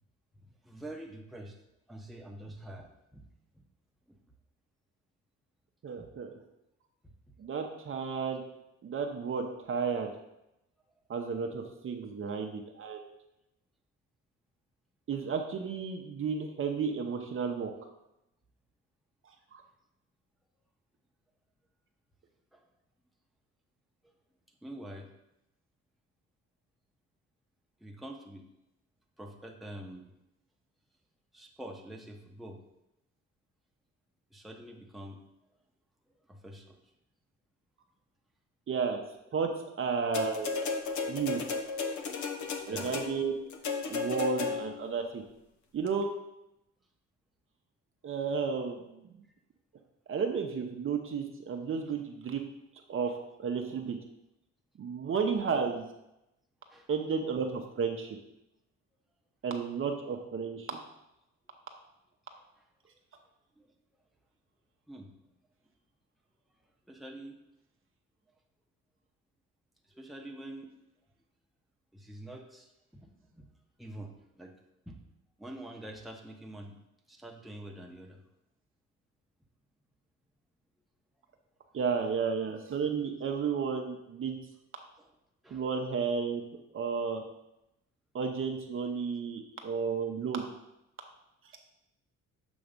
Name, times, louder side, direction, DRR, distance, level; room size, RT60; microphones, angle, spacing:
voice 1, 0.4-1.6 1.9-3.3 3.5-3.6 4.1-4.2 6.0-6.1 7.0-7.1 22.5-22.6 24.6-25.1 27.8-28.4 29.2-30.1 31.3-32.6 34.3-35.2 36.3-36.8 42.7-43.0 56.7-56.9 62.6-62.7 63.6-63.7 64.9-65.1 66.9-67.4 69.9-70.7 71.9-73.5 73.8-74.5 74.9-75.0 75.4-76.7 77.1-78.2 85.0-85.1 85.4-85.6, right 1 dB, ahead, 1 dB, 0.9 m, -46 dB
voice 2, 5.8-6.3 7.4-8.4 8.8-10.1 11.1-13.0 15.1-17.9 19.5-19.6 38.7-39.0 39.3-40.5 41.1-41.4 42.7-43.3 43.9-45.2 45.7-46.1 48.0-49.0 50.1-52.4 52.9-53.1 53.4-54.0 54.8-55.9 56.9-58.2 59.4-60.8 81.7-84.4 85.5-86.4 86.7-87.2 88.1-90.5, right 5 dB, 45° right, 3 dB, 0.7 m, -32 dB
sound 1, 40.1-44.9 45.9-46.0, left 4 dB, 70° left, 0.8 m, -34 dB
7.0 x 3.1 x 5.2 m, 0.88 s
cardioid pair, 90°, 30 cm